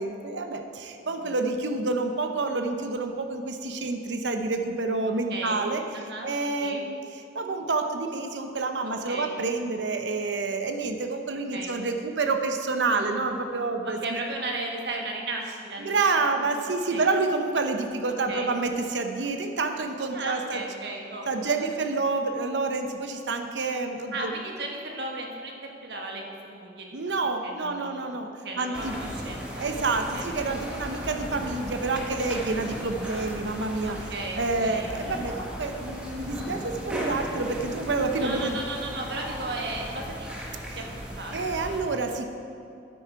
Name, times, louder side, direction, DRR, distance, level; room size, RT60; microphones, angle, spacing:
voice 1, 0.0-5.8 6.2-7.0 7.3-14.2 15.8-20.6 21.3-24.3 26.9-28.9 29.6-34.0 34.4-38.6 40.7-40.8 41.3-42.3, right 3 dB, 85° right, 6 dB, 0.8 m, -28 dB
voice 2, 5.3-6.3 6.6-6.8 9.1-9.3 11.5-11.8 12.9-13.2 13.8-16.3 16.9-17.1 18.3-18.5 20.1-21.8 24.1-27.1 27.4-28.1 28.4-29.6 30.1-30.3 33.8-34.9 38.2-40.8 41.2-41.8, right 2 dB, 65° right, 0 dB, 1.4 m, -36 dB
sound 1, 28.7-41.8, equal, 5° right, 1.3 m, -36 dB
9.2 x 8.6 x 4.6 m, 2.6 s
head